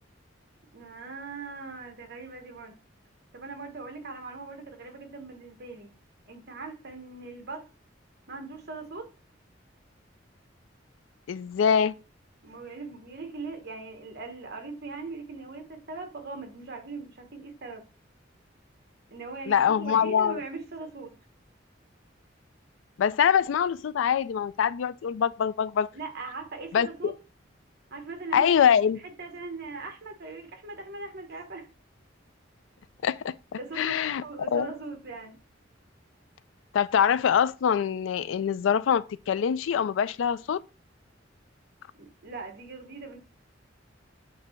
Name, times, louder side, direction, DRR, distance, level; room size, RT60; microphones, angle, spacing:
voice 1, 0.7-2.8 3.3-5.9 6.3-7.7 8.3-9.1 12.4-17.8 19.1-21.1 25.9-27.1 27.9-28.6 29.0-31.7 33.5-35.4 41.9-43.2, right 3 dB, 55° right, 1.3 m, -40 dB
voice 2, 11.3-12.0 19.5-20.4 23.0-25.9 26.7-27.1 28.3-29.0 33.0-33.3 33.8-34.2 34.5-34.7 36.7-40.6, left 8 dB, 80° left, 0.3 m, -24 dB
8.1 x 2.8 x 4.4 m
head